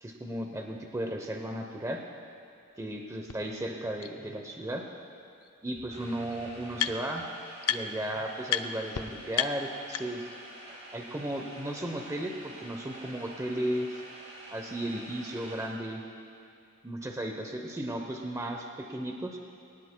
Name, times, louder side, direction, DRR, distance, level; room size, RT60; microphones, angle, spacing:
voice 1, 0.0-2.1 2.8-4.8 5.6-7.3 7.7-10.2 10.9-14.0 14.5-16.0 16.8-19.4, right 1 dB, 15° right, 2 dB, 0.7 m, -35 dB
sound 1, 3.3-3.4 4.0-4.1 5.4-5.5 5.7-7.3 7.6-8.1 8.5-8.6 8.9-9.0 9.3-10.4, left 10 dB, 85° left, 0.5 m, -32 dB
sound 2, 5.9-15.7, right 1 dB, 35° right, 3.7 m, -48 dB
21.5 x 18.5 x 2.2 m, 2.5 s
head